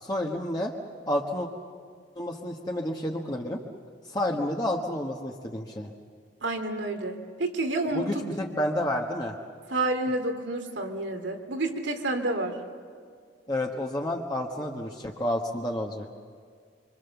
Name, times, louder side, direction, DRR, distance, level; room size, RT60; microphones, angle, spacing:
voice 1, 0.0-0.7 1.1-1.5 2.1-3.6 4.1-5.9 7.9-9.3 13.5-16.1, left 1 dB, 25° left, -1 dB, 1.4 m, -30 dB
voice 2, 6.4-8.2 9.7-12.6, right 2 dB, 85° right, 5 dB, 2.7 m, -29 dB
26.0 x 26.0 x 7.1 m, 2.1 s
head